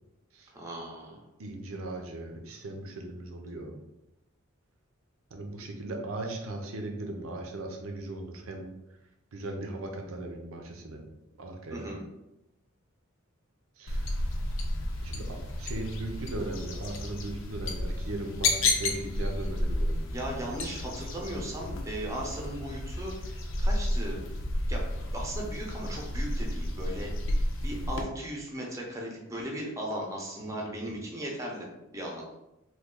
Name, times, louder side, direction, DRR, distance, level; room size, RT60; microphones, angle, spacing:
voice 1, 0.5-1.2 11.7-12.0 15.7-15.8 20.1-24.2 24.7-24.9 25.1-27.1 27.6-32.2, right 1 dB, 15° right, -1 dB, 0.5 m, -37 dB
voice 2, 1.4-3.8 5.3-8.7 9.3-11.0 11.4-11.9 13.8-14.3 15.0-20.0 30.4-31.0, right 2 dB, 80° right, 3 dB, 0.6 m, -38 dB
sound 1, 13.9-28.0, left 1 dB, 65° left, 0.5 m, -31 dB
3.1 x 2.2 x 3.6 m, 0.93 s
head